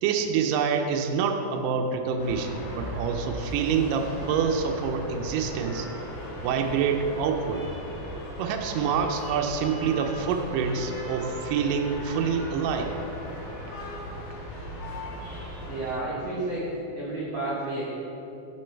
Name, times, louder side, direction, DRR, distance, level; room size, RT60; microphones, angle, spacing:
voice 1, 0.0-5.9 6.4-7.7 8.4-12.9, right 6 dB, 90° right, 4 dB, 1.9 m, -26 dB
sound 1, 2.2-15.9, equal, 65° left, 2.5 m, -37 dB
voice 2, 15.6-17.9, right 2 dB, 65° right, -8 dB, 1.5 m, -31 dB
9.3 x 3.8 x 4.4 m, 3.0 s
omnidirectional pair, 4.3 m